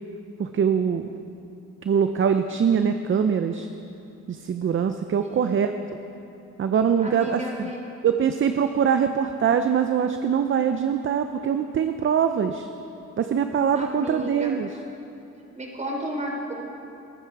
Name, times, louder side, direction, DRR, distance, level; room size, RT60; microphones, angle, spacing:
voice 1, 0.4-1.1 1.8-3.7 4.3-5.7 6.6-7.7 8.0-12.7 13.2-14.7, right 7 dB, 40° right, 8 dB, 0.7 m, -23 dB
voice 2, 5.2-5.8 7.0-7.8 8.9-9.1 13.8-14.5 15.5-16.5, equal, 25° right, -1 dB, 3.9 m, -34 dB
22.0 x 13.0 x 4.8 m, 2.8 s
cardioid pair, 90°, 30 cm